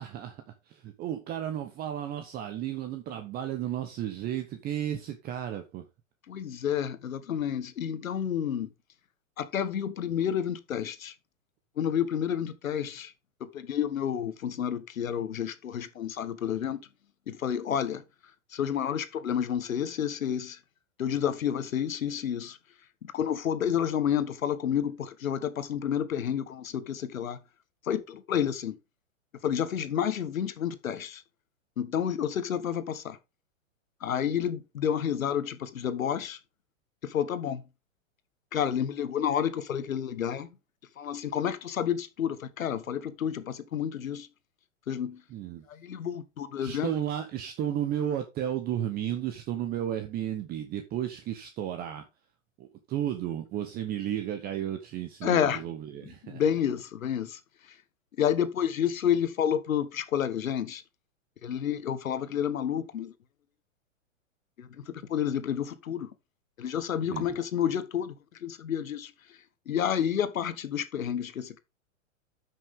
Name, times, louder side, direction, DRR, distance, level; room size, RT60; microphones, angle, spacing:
voice 1, 0.0-5.9 45.3-45.6 46.6-52.1 52.6-56.4 67.1-67.4, right 10 dB, 25° right, 0.9 m, -33 dB
voice 2, 6.3-8.7 9.4-11.1 11.8-13.1 13.4-16.9 17.3-18.0 18.5-20.6 21.0-22.6 23.0-27.4 27.8-28.8 29.4-31.2 31.8-33.2 34.0-36.4 37.0-37.6 38.5-40.5 41.0-44.3 44.9-45.2 45.7-46.9 55.2-55.6 56.2-57.8 58.2-60.8 61.4-63.1 64.6-66.1 66.6-68.1 68.4-69.4 69.7-71.6, left 9 dB, 90° left, 1.3 m, -30 dB
10.5 x 6.1 x 3.6 m
hypercardioid pair, 135°, 39 cm